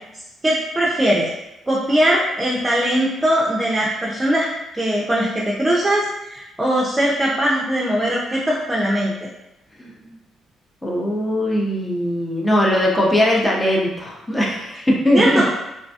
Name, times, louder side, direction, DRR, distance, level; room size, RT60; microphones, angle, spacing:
voice 1, 0.4-1.3 1.7-4.5 4.7-9.1 15.1-15.5, equal, 20° right, -4 dB, 0.6 m, -20 dB
voice 2, 9.8-10.1 10.8-15.5, equal, 15° left, -3 dB, 0.7 m, -20 dB
3.3 x 2.1 x 2.7 m, 0.92 s
supercardioid pair, 60°, 0 cm